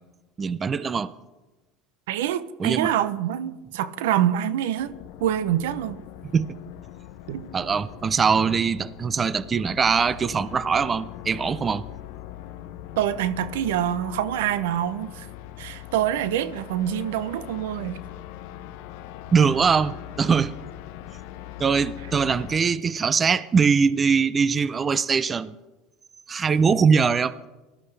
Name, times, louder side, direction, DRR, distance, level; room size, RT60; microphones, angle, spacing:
voice 1, 0.4-1.1 2.6-2.9 6.3-6.5 7.5-11.8 19.3-20.5 21.6-25.6 26.3-27.3, right 5 dB, 25° right, 0.5 m, -22 dB
voice 2, 2.1-6.0 7.3-7.5 13.0-15.3 15.6-18.0, right 11 dB, 85° right, 0.6 m, -26 dB
sound 1, 4.8-22.6, left 13 dB, 75° left, 0.8 m, -41 dB
19.0 x 13.0 x 3.3 m
supercardioid pair, 115°, 0 cm